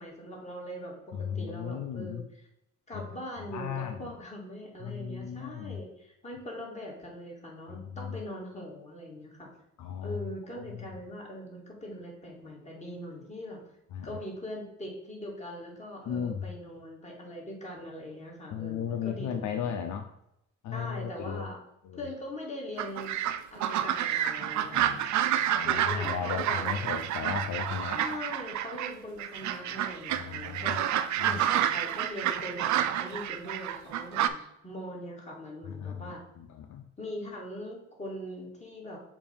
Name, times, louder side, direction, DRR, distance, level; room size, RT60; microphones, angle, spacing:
voice 1, 0.0-2.5 2.9-9.5 10.0-13.6 14.0-19.9 20.7-21.6 21.9-23.2 23.5-27.1 27.9-30.8 31.2-36.2 37.0-39.0, equal, 25° left, -2 dB, 2.2 m, -41 dB
voice 2, 1.1-2.2 2.9-3.0 3.4-4.1 4.8-5.8 7.7-8.2 9.8-10.2 10.5-10.7 13.9-14.2 16.1-16.4 18.5-20.1 20.6-21.5 21.8-22.1 24.6-25.0 25.4-28.0 30.1-30.8 31.2-31.4 35.8-36.9, left 7 dB, 70° left, 6 dB, 0.6 m, -36 dB
sound 1, 22.8-28.9 29.2-34.3, right 11 dB, 70° right, 0.5 m, -29 dB
7.1 x 2.7 x 5.2 m, 0.79 s
cardioid pair, 90°, 30 cm